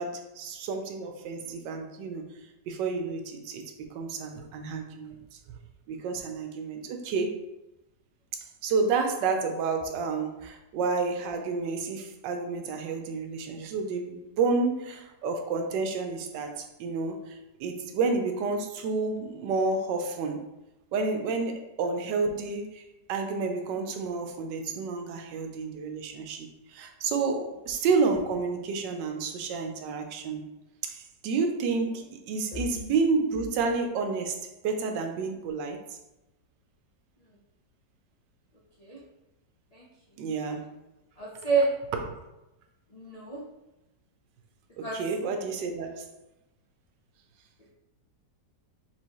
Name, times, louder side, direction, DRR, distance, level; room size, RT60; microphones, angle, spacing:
voice 1, 0.0-2.3 2.7-5.4 5.9-7.4 8.3-20.4 20.9-22.8 23.1-30.4 30.8-34.4 34.6-36.0 40.2-40.7 44.8-46.1, right 4 dB, 85° right, 5 dB, 1.3 m, -30 dB
voice 2, 41.2-41.7 42.9-43.4 44.8-45.0, right 4 dB, 70° left, -5 dB, 0.3 m, -28 dB
4.5 x 3.6 x 3.0 m, 0.95 s
omnidirectional pair, 1.9 m